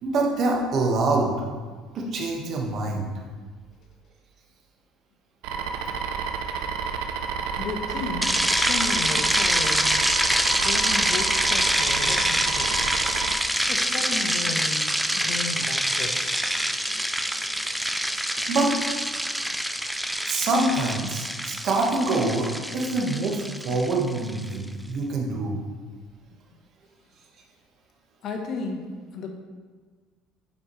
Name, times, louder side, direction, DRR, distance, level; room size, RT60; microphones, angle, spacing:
voice 1, 0.0-1.3 1.9-3.1 18.5-18.7 20.3-25.6, right 2 dB, 55° right, -1 dB, 1.4 m, -25 dB
sound 1, 5.4-13.4, right 6 dB, 75° right, 0.6 m, -30 dB
voice 2, 7.5-9.9 10.6-12.7 13.7-16.5 28.2-29.3, left 4 dB, 55° left, 3 dB, 1.1 m, -34 dB
sound 2, 8.2-24.5, equal, ahead, 0.3 m, -25 dB
8.4 x 4.8 x 3.2 m, 1.5 s
supercardioid pair, 105°, 0 cm